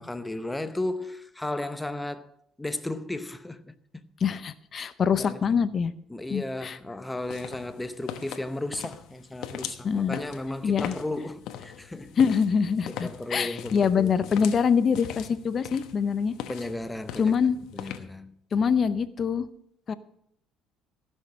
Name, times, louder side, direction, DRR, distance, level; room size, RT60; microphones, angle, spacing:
voice 1, 0.0-2.3 2.6-3.7 5.2-5.7 6.1-12.2 12.9-14.1 16.5-17.4 17.7-18.3, left 2 dB, 10° left, 0.8 m, -34 dB
voice 2, 4.2-5.9 6.3-6.8 9.8-10.2 10.6-10.9 12.2-16.3 17.2-17.6 18.5-19.5 19.9-20.0, left 6 dB, 40° left, 0.7 m, -24 dB
sound 1, 7.2-18.0, left 10 dB, 75° left, 1.1 m, -41 dB
15.0 x 6.5 x 6.2 m
cardioid pair, 95°, 0 cm